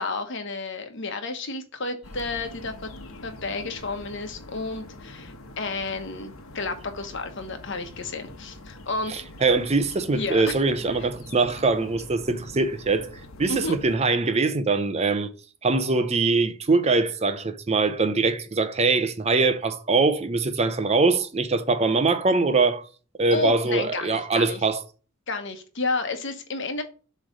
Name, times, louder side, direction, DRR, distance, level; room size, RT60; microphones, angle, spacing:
voice 1, 0.0-2.9 3.2-9.1 10.1-10.5 11.0-11.1 13.5-13.8 23.3-24.6 25.3-26.8, left 3 dB, 60° left, 1.1 m, -31 dB
sound 1, 2.0-14.0, left 1 dB, 85° left, 1.0 m, -44 dB
voice 2, 9.1-13.1 13.4-15.3 15.6-22.9 23.2-24.8, right 3 dB, 30° right, 0.6 m, -23 dB
7.7 x 3.2 x 5.1 m
head